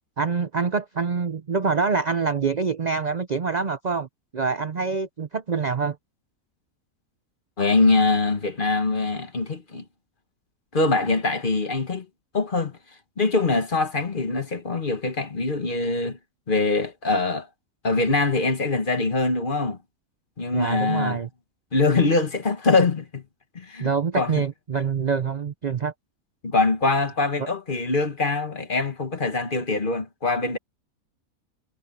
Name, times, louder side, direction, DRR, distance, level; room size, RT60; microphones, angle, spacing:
voice 1, 0.2-4.1 4.3-6.0 20.5-21.3 23.8-25.9 27.4-27.5, right 5 dB, 45° right, 0.6 m, -25 dB
voice 2, 7.6-9.8 10.7-12.0 12.3-12.7 13.2-16.2 16.5-17.5 17.8-19.8 20.4-21.2 21.7-23.2 23.5-24.4 26.4-30.6, left 3 dB, 35° left, 1.5 m, -23 dB
omnidirectional pair, 1.5 m